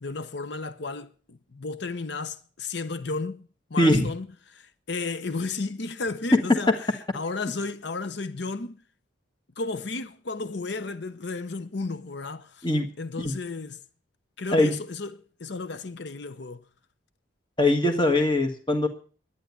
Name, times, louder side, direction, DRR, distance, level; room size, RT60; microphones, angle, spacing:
voice 1, 0.0-4.3 4.5-8.8 9.6-12.7 13.0-13.8 14.4-16.6, left 3 dB, 65° left, 0.8 m, -33 dB
voice 2, 3.8-4.1 6.3-6.4 12.6-12.9 13.2-13.3 14.5-14.8 17.6-18.9, left 1 dB, 25° left, 1.6 m, -21 dB
11.5 x 9.8 x 8.2 m
head